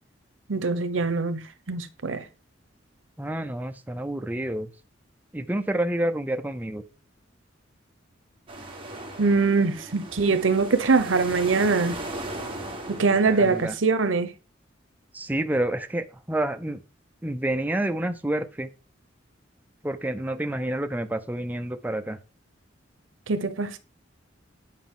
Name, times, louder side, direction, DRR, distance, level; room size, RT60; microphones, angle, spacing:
voice 1, 0.5-1.4 1.7-2.2 9.2-12.0 13.0-14.3 23.3-23.8, right 4 dB, 85° right, 0.8 m, -23 dB
voice 2, 3.2-4.7 5.3-6.8 13.2-13.8 15.1-16.8 17.2-18.7 19.8-22.2, right 1 dB, 10° right, 0.5 m, -28 dB
sound 1, 8.5-13.8, right 1 dB, 30° right, 1.9 m, -37 dB
9.2 x 5.2 x 3.7 m
head